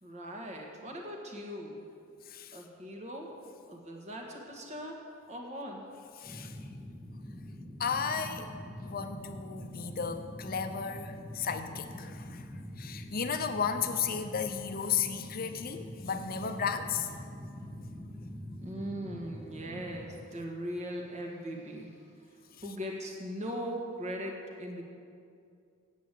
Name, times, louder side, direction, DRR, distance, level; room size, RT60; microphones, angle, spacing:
voice 1, 0.0-1.8 2.5-3.3 3.7-5.0 5.3-5.8 18.6-24.8, equal, 35° right, 1 dB, 1.6 m, -40 dB
voice 2, 6.2-6.6 7.8-8.5 8.8-12.5 12.8-17.1, left 6 dB, 45° left, 8 dB, 0.7 m, -34 dB
sound 1, 6.2-20.0, left 1 dB, 10° left, 1.7 m, -44 dB
8.5 x 8.3 x 8.3 m, 2.4 s
head